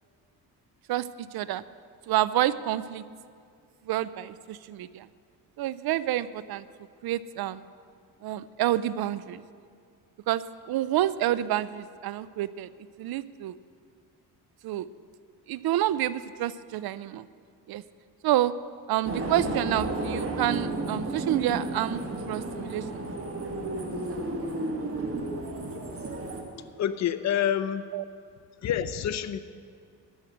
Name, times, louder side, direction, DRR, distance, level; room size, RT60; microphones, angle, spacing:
voice 1, 0.9-1.6 2.1-3.0 3.9-5.1 5.6-6.7 7.0-7.6 8.2-9.4 10.3-12.7 13.0-13.5 14.6-14.9 15.5-17.3 17.7-17.8 18.2-18.5 18.9-23.1 27.9-28.0, right 13 dB, 65° right, 17 dB, 0.5 m, -28 dB
sound 1, 19.0-26.4, right 2 dB, 35° right, 1.7 m, -32 dB
voice 2, 26.8-27.9 28.6-29.4, left 9 dB, 45° left, 11 dB, 0.6 m, -27 dB
12.0 x 6.5 x 8.9 m, 2.2 s
cardioid pair, 95°, 40 cm